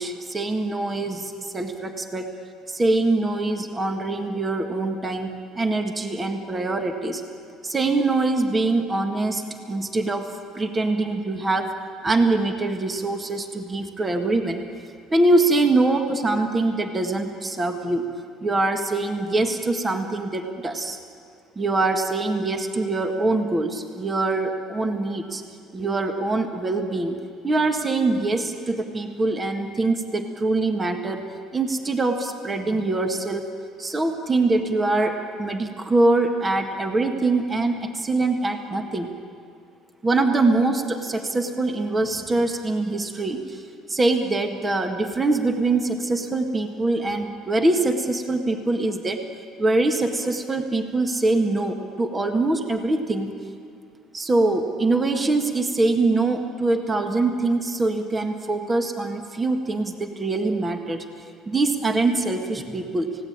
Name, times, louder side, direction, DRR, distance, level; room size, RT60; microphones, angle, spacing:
voice 1, 0.0-2.3 2.7-7.2 7.6-9.4 9.7-11.7 12.0-14.6 15.1-18.0 18.4-21.0 21.6-25.4 25.7-27.2 27.4-33.5 33.8-39.1 40.0-43.6 43.9-49.2 49.6-53.3 54.1-61.0 61.5-63.1, right 2 dB, 20° right, 5 dB, 1.8 m, -23 dB
29.5 x 17.5 x 8.8 m, 2.3 s
cardioid pair, 120°, 0 cm